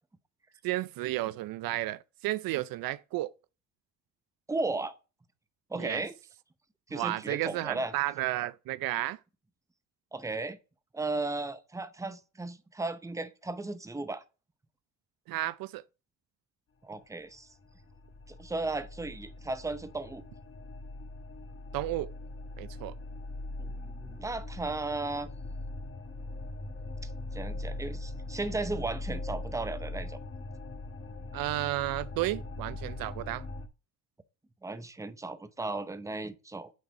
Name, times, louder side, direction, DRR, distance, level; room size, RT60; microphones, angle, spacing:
voice 1, 0.6-3.3 5.8-6.0 6.9-9.2 15.3-15.8 21.7-22.1 22.6-22.9 31.3-33.5, right 16 dB, 80° right, 0.5 m, -32 dB
voice 2, 4.5-4.9 5.7-6.2 6.9-7.9 10.1-10.6 10.9-14.2 16.8-17.5 18.3-20.3 23.6-25.3 27.0-30.2 34.6-36.7, right 2 dB, 10° right, 0.7 m, -35 dB
sound 1, 17.4-33.7, left 2 dB, 35° left, 1.0 m, -41 dB
6.3 x 4.0 x 4.4 m
cardioid pair, 95°, 35 cm